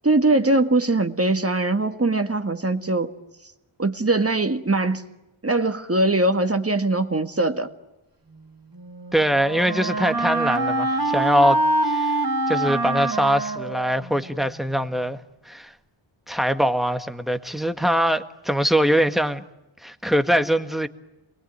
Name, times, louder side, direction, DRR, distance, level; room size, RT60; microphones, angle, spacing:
voice 1, 0.0-3.1 3.8-5.0 5.4-7.7, right 2 dB, 30° right, 1.8 m, -21 dB
Wind instrument woodwind instrument, 8.7-14.5, right 2 dB, 45° right, 3.3 m, -25 dB
voice 2, 9.1-11.6 11.9-12.2 12.5-15.2 15.4-15.7 16.3-19.4 19.8-20.9, equal, ahead, 1.6 m, -22 dB
29.0 x 22.0 x 9.3 m
wide cardioid pair, 85°, 49 cm